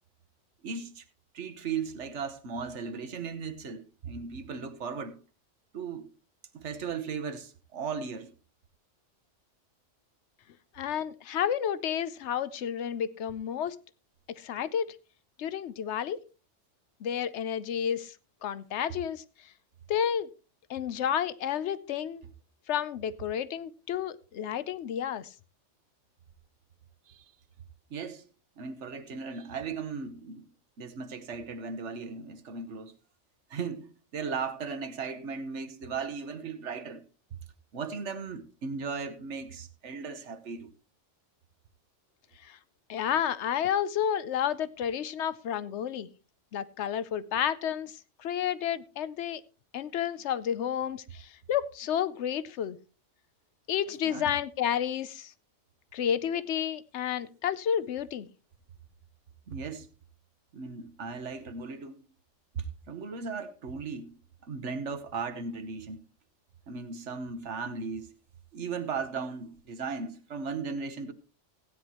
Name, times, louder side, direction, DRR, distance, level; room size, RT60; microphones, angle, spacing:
voice 1, 0.6-1.0 1.3-5.2 5.7-6.1 6.5-8.3 27.1-27.3 27.9-28.2 28.6-30.5 30.8-32.9 33.5-37.1 37.7-40.7 54.0-54.3 59.5-59.9 60.5-61.9 62.5-66.0 66.7-68.1 68.5-71.1, right 5 dB, 70° right, 1.3 m, -37 dB
voice 2, 10.8-13.8 14.4-14.9 15.4-16.2 17.0-18.1 18.4-19.2 19.9-20.3 20.7-22.2 22.7-25.3 42.4-42.6 42.9-46.1 46.5-47.9 48.2-49.4 49.7-52.8 53.7-55.3 55.9-58.3, left 9 dB, 70° left, 1.0 m, -31 dB
16.0 x 9.7 x 3.0 m
omnidirectional pair, 1.2 m